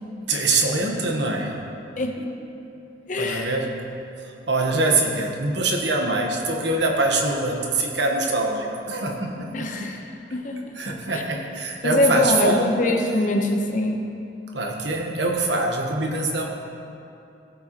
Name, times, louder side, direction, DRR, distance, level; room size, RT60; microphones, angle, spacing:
voice 1, 0.3-1.6 3.2-3.9 4.2-9.9 10.7-12.7 14.5-16.5, right 2 dB, 80° right, 1 dB, 1.3 m, -24 dB
voice 2, 2.0-2.3 3.1-3.5 9.5-10.0 10.3-10.8 11.1-11.2 11.8-14.1, left 1 dB, 45° left, 3 dB, 0.9 m, -23 dB
16.0 x 7.8 x 3.0 m, 2.7 s
head